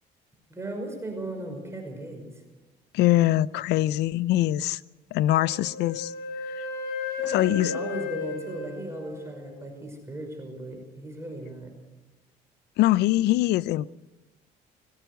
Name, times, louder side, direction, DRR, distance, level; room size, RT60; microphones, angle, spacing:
voice 1, 0.5-2.4 7.1-11.7, right 1 dB, 15° right, 2 dB, 5.7 m, -37 dB
voice 2, 2.9-4.8 5.1-6.1 6.5-6.6 7.3-7.7 12.8-13.9, left 15 dB, 80° left, 18 dB, 0.6 m, -23 dB
Wind instrument woodwind instrument, 5.4-9.6, left 5 dB, 65° left, 5.9 m, -34 dB
20.5 x 15.5 x 8.1 m, 1.1 s
cardioid pair, 110°, 17 cm